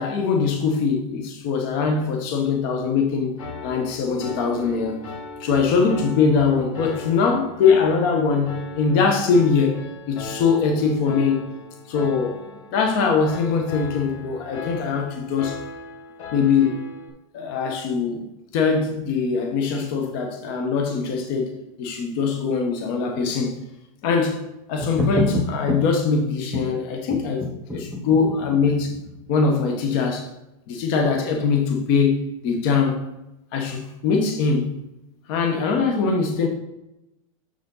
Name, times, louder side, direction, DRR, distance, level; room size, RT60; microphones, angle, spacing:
voice 1, 0.0-3.4 3.6-5.0 5.4-9.8 10.1-11.4 11.9-15.6 16.3-16.8 17.3-18.2 18.5-23.6 24.0-24.4 24.7-27.4 27.7-28.9 29.3-30.3 30.7-33.0 33.5-34.8 35.3-36.5, left 5 dB, 40° left, 1.1 m, -22 dB
Piano, 3.4-17.1, left 3 dB, 70° left, 1.7 m, -38 dB
sound 1, 24.8-25.8 26.5-26.7 27.1-29.2, left 1 dB, ahead, 0.6 m, -27 dB
6.7 x 6.6 x 3.8 m
supercardioid pair, 180°, 17 cm